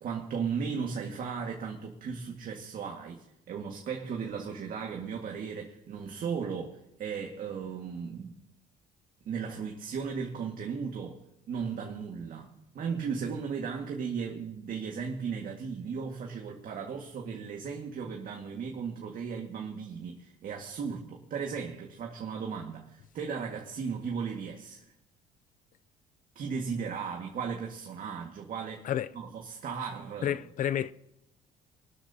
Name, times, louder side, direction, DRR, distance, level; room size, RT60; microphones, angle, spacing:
voice 1, 0.0-8.4 9.3-11.2 11.5-24.8 26.4-28.9 29.1-30.4, right 6 dB, 55° right, 1.9 m, -36 dB
voice 2, 30.2-30.9, left 10 dB, 50° left, 0.6 m, -30 dB
25.5 x 12.5 x 2.9 m
cardioid pair, 110°, 17 cm